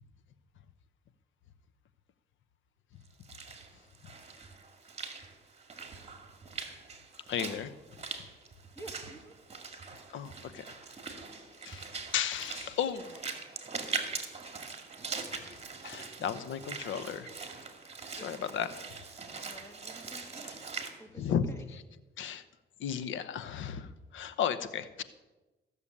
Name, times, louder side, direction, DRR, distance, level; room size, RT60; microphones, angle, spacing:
Walk footsteps / Splash splatter, 3.1-20.9, right 4 dB, 30° right, 2.2 m, -42 dB
voice 1, 7.3-7.7 10.1-10.6 11.6-13.2 15.3-17.6 18.2-18.9 20.4-20.8 21.2-21.4 22.2-22.4 22.8-25.0, left 8 dB, 75° left, 13 dB, 1.0 m, -35 dB
voice 2, 8.7-9.3 18.1-18.3 19.4-20.5 20.9-21.6, right 1 dB, 15° left, 6 dB, 2.0 m, -50 dB
15.0 x 6.9 x 8.6 m, 1.1 s
cardioid pair, 90°, 20 cm